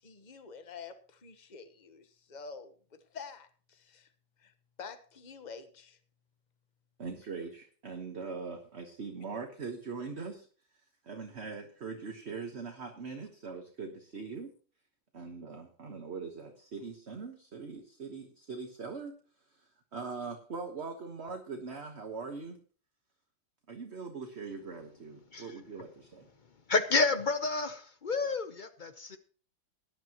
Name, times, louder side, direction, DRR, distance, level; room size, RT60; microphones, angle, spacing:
voice 1, 0.0-4.1 4.4-4.5 4.8-6.0 14.1-14.3, left 5 dB, 30° left, 10 dB, 1.1 m, -48 dB
voice 2, 7.0-10.5 11.0-14.5 15.1-19.2 19.6-22.6 23.7-26.3, right 4 dB, 40° right, 4 dB, 1.4 m, -41 dB
voice 3, 26.7-29.2, left 3 dB, 60° left, 10 dB, 0.4 m, -30 dB
18.0 x 11.0 x 3.0 m, 0.41 s
omnidirectional pair, 2.0 m